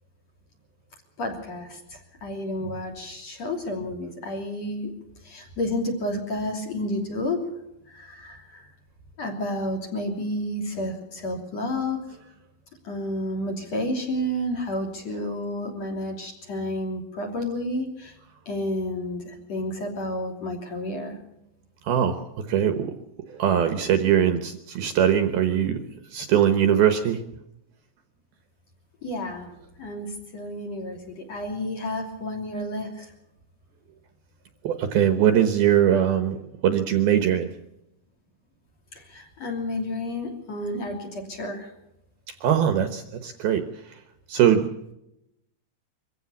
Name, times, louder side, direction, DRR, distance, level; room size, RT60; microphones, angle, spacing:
voice 1, 1.2-4.9 5.2-7.5 7.9-8.7 9.2-12.0 12.8-18.2 18.5-21.2 29.0-33.1 38.9-41.7, left 1 dB, 40° left, 1 dB, 3.8 m, -31 dB
voice 2, 21.9-22.2 22.5-22.9 23.4-25.8 26.1-27.2 34.6-36.4 36.6-37.5 42.4-43.7 44.3-44.7, right 9 dB, 70° right, 8 dB, 2.6 m, -21 dB
24.0 x 15.5 x 7.2 m, 0.84 s
omnidirectional pair, 5.3 m